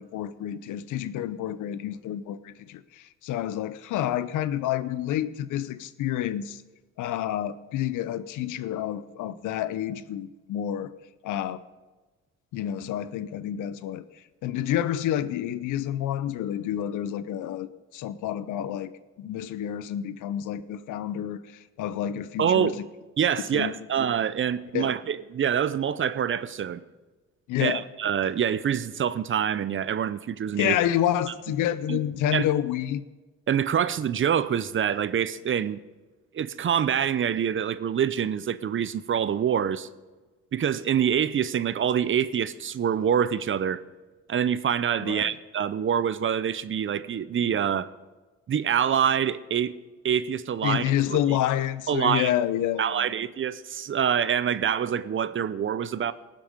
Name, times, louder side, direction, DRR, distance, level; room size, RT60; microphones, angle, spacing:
voice 1, 0.0-6.6 7.0-10.9 11.2-11.6 12.5-14.1 14.4-18.9 19.2-22.7 23.5-23.8 24.7-24.9 27.5-27.8 30.6-33.0 45.0-45.3 50.6-53.1, left 11 dB, 85° left, 0.7 m, -29 dB
voice 2, 22.4-22.8 23.2-26.8 27.6-30.8 31.9-32.0 32.3-32.4 33.5-35.8 36.3-39.9 40.5-43.8 44.3-47.9 48.5-49.7 50.0-50.8 51.1-51.2 51.9-52.3 52.8-56.1, right 8 dB, 40° right, 0.6 m, -25 dB
18.0 x 7.6 x 5.3 m
cardioid pair, 90°, 30 cm